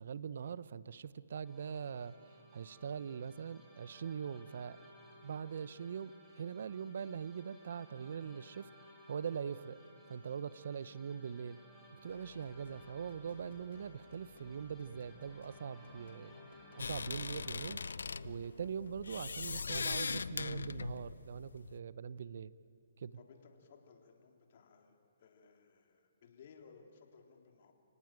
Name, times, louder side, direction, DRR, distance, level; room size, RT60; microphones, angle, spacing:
voice 1, 0.0-4.8 5.2-8.7 9.1-9.8 10.1-11.6 12.0-16.3 16.7-17.8 18.2-22.5 23.0-23.2, right 7 dB, 60° right, 18 dB, 0.7 m, -42 dB
sound 1, 1.4-17.8, equal, ahead, 4.6 m, -59 dB
sound 2, 12.1-20.8, left 5 dB, 65° left, 1.9 m, -59 dB
sound 3, 16.8-21.8, left 4 dB, 80° left, 0.6 m, -40 dB
voice 2, 23.2-27.7, left 5 dB, 50° left, 3 dB, 3.4 m, -60 dB
30.0 x 18.0 x 9.1 m, 2.5 s
hypercardioid pair, 150°, 0 cm